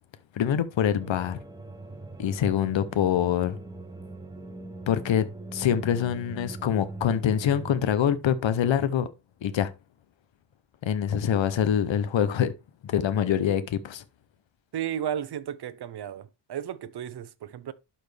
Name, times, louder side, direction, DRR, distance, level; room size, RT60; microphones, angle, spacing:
voice 1, 0.3-1.4 2.2-3.6 4.9-5.3 5.5-9.1 9.4-9.7 10.8-12.5 12.8-14.0, left 9 dB, 90° left, 0.8 m, -25 dB
sound 1, 1.0-7.8, right 2 dB, 10° right, 0.9 m, -41 dB
voice 2, 14.7-17.7, right 10 dB, 60° right, 0.7 m, -34 dB
11.5 x 4.3 x 3.3 m
wide cardioid pair, 155°, 44 cm